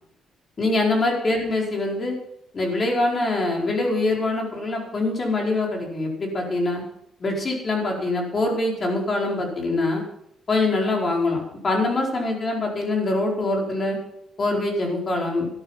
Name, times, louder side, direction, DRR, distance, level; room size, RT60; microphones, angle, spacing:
voice 1, 0.6-2.1 2.5-6.8 7.2-10.0 10.5-14.0 14.4-15.5, left 2 dB, 40° left, 0 dB, 4.7 m, -24 dB
14.0 x 11.0 x 5.8 m, 0.76 s
cardioid pair, 90°, 0 cm